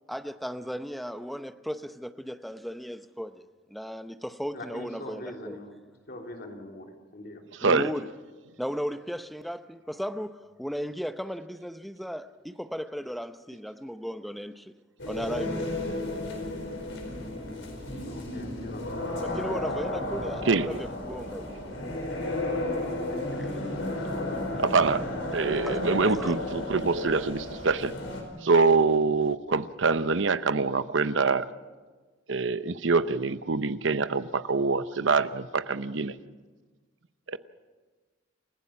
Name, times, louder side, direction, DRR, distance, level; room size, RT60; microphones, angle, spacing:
voice 1, 0.1-5.6 7.6-8.1 8.6-14.7 15.1-15.7 19.2-21.5 23.4-23.5 25.6-25.8 26.0-26.4, equal, ahead, 0.7 m, -36 dB
voice 2, 4.5-5.7 6.1-7.4 18.0-19.2 23.1-23.4 23.8-24.4, left 1 dB, 55° left, 3.2 m, -43 dB
sound 1, 15.0-28.2, left 1 dB, 80° left, 4.7 m, -33 dB
voice 3, 24.6-25.1 25.3-27.9 28.4-31.5 32.3-36.1 37.3-37.4, right 4 dB, 75° right, 0.8 m, -25 dB
29.0 x 15.5 x 5.9 m
head